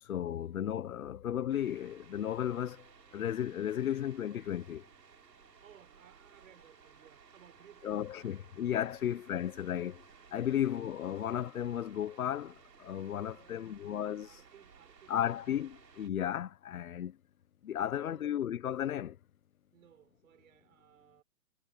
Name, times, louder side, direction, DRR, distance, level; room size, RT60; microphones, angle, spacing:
voice 1, 0.0-2.9 3.1-4.9 7.8-10.1 10.3-14.3 15.1-17.2 17.6-19.2, left 10 dB, 60° left, 1.3 m, -34 dB
sound 1, 1.5-16.1, right 6 dB, 90° right, 7.7 m, -59 dB
voice 2, 5.6-8.3 8.9-9.0 13.1-13.8 14.2-15.6 17.9-18.3 19.7-21.2, right 10 dB, 55° right, 6.7 m, -61 dB
hypercardioid pair, 160°, 47 cm